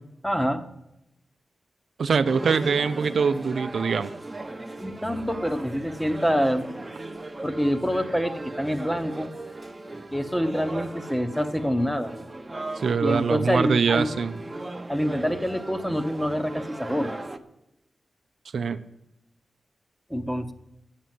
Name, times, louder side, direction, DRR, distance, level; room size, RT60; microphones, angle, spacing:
voice 1, 0.2-0.6 4.8-6.8 7.4-9.3 10.1-12.1 13.0-14.1 14.9-17.2 20.1-20.5, equal, 5° left, 9 dB, 1.1 m, -26 dB
voice 2, 2.0-4.1 12.8-14.3 18.5-18.8, right 5 dB, 80° right, 10 dB, 0.6 m, -23 dB
sound 1, 2.3-17.4, right 2 dB, 25° right, 1.0 m, -38 dB
9.9 x 7.5 x 9.4 m, 0.88 s
cardioid pair, 65°, 0 cm